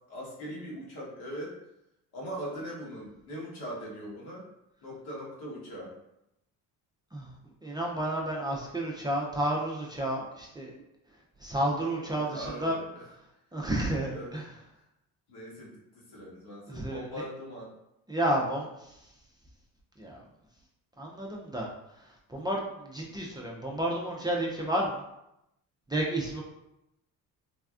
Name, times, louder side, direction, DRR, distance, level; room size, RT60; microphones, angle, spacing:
voice 1, 0.1-1.5 2.1-4.5 4.8-5.9 12.0-13.0 14.1-14.5 15.3-15.8 16.1-17.7 23.0-23.2, equal, 70° left, -4 dB, 1.3 m, -41 dB
voice 2, 7.6-10.8 11.4-12.8 13.5-14.5 16.7-17.1 18.1-18.9 20.0-20.2 21.0-21.7 22.3-25.0 25.9-26.4, right 1 dB, 10° right, -3 dB, 0.4 m, -31 dB
3.3 x 2.2 x 2.4 m, 0.86 s
supercardioid pair, 75°, 39 cm